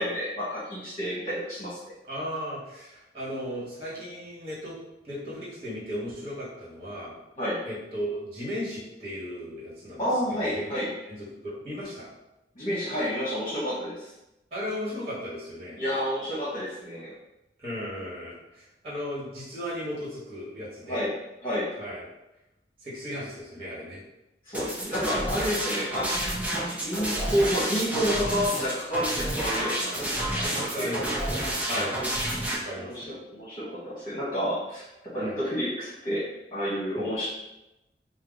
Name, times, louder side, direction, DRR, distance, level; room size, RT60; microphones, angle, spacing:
voice 1, 0.0-1.8 7.4-7.6 10.0-10.9 12.5-14.1 15.8-17.1 20.9-21.1 21.4-21.7 24.4-26.1 26.4-30.9 31.7-31.9 32.8-33.1 33.3-36.2 36.5-37.3, equal, 30° left, -9 dB, 1.3 m, -30 dB
voice 2, 2.0-4.8 5.0-7.1 7.6-10.0 10.3-10.8 11.0-12.1 14.5-15.8 17.6-21.1 21.8-22.0 22.8-24.0 30.6-31.9 32.5-33.2 35.2-35.4 36.9-37.1, equal, 30° right, -7 dB, 1.4 m, -36 dB
sound 1, 24.5-32.6, right 1 dB, 10° right, 0.6 m, -30 dB
4.6 x 2.1 x 3.9 m, 0.94 s
head